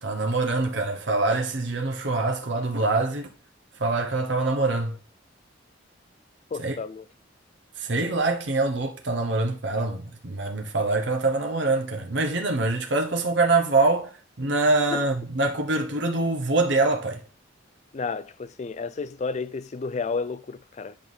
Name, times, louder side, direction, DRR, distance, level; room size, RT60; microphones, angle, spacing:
voice 1, 0.0-3.3 3.8-5.0 6.6-6.8 7.8-14.1 14.4-17.2, right 3 dB, 65° right, 1.1 m, -24 dB
voice 2, 6.5-7.1 14.9-15.0 17.9-21.0, left 4 dB, 35° left, 0.4 m, -31 dB
8.6 x 4.3 x 3.5 m
head